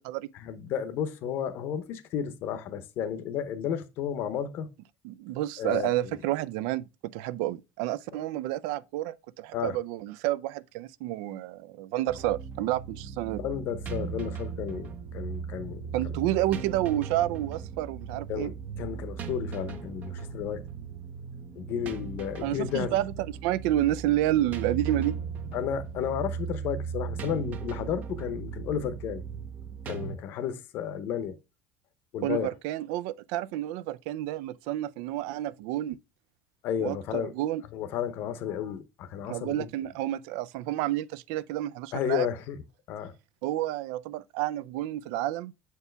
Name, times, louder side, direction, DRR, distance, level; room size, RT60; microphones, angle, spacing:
voice 1, 0.4-4.7 5.6-6.2 9.5-9.8 13.4-15.9 18.3-18.5 18.8-20.6 21.6-22.9 25.5-29.2 29.9-31.4 32.1-32.5 36.6-37.3 37.7-39.6 41.9-42.6 42.9-43.1, left 9 dB, 50° left, 0.7 m, -32 dB
voice 2, 5.0-13.4 15.9-18.5 22.4-23.1 23.4-25.1 32.2-36.0 36.8-37.6 39.3-42.3 43.4-45.5, right 14 dB, 80° right, 0.4 m, -30 dB
sound 1, 12.1-30.2, right 6 dB, 35° right, 0.6 m, -37 dB
6.8 x 4.6 x 3.3 m
cardioid pair, 170°, 5 cm